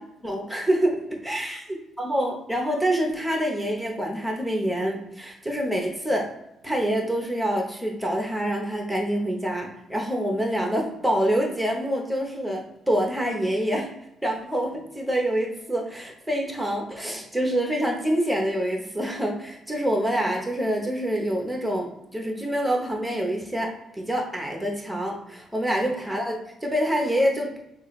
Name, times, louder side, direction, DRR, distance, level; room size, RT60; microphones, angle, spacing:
voice 1, 0.2-6.3 6.6-13.9 14.2-27.6, equal, 5° right, 1 dB, 1.0 m, -26 dB
5.8 x 2.5 x 3.2 m, 0.84 s
cardioid pair, 90°, 0 cm